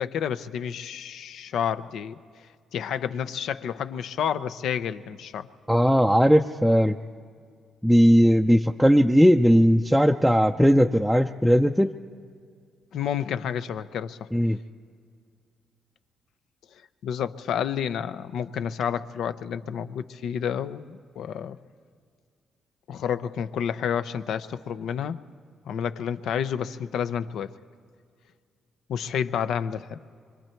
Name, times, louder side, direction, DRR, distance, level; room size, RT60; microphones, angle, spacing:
voice 1, 0.0-2.2 2.7-5.5 12.9-14.2 17.0-21.6 22.9-25.2 25.7-27.5 28.9-30.0, left 8 dB, 75° left, 12 dB, 0.6 m, -30 dB
voice 2, 5.7-7.0 7.8-12.0 14.3-14.6, equal, ahead, 2 dB, 0.5 m, -18 dB
25.0 x 24.0 x 4.5 m, 2.1 s
cardioid pair, 90°, 0 cm